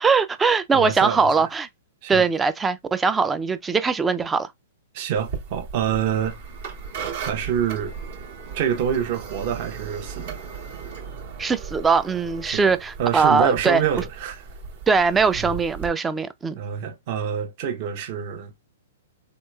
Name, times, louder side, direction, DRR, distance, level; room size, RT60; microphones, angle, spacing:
voice 1, 0.0-1.7 2.1-4.5 11.4-13.8 14.9-16.6, right 5 dB, 15° right, 0.3 m, -21 dB
voice 2, 0.7-1.2 2.0-2.2 4.9-6.4 7.2-7.9 8.5-10.4 12.5-12.7 13.0-14.4 15.4-15.6 16.5-18.5, right 8 dB, 45° right, 0.8 m, -26 dB
sound 1, 5.2-15.9, right 6 dB, 65° right, 1.2 m, -37 dB
3.1 x 2.9 x 2.3 m
hypercardioid pair, 130°, 0 cm